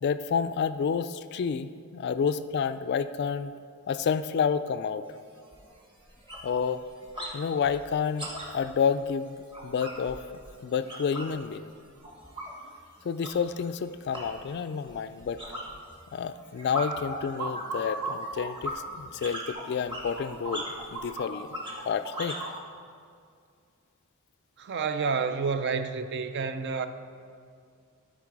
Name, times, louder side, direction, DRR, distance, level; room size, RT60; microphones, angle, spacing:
voice 1, 0.0-3.5 3.9-5.0 6.4-6.8 7.3-9.4 9.6-10.2 10.6-11.7 13.0-15.4 16.1-21.5 21.9-22.4, left 6 dB, 50° left, 12 dB, 0.3 m, -29 dB
sound 1, 5.1-5.2 5.5-5.7 6.0-7.4 7.6-11.4 11.7-22.5, right 1 dB, 25° right, 1.2 m, -38 dB
voice 2, 24.6-26.9, right 5 dB, 55° right, 10 dB, 0.4 m, -29 dB
12.0 x 4.6 x 4.7 m, 2.3 s
head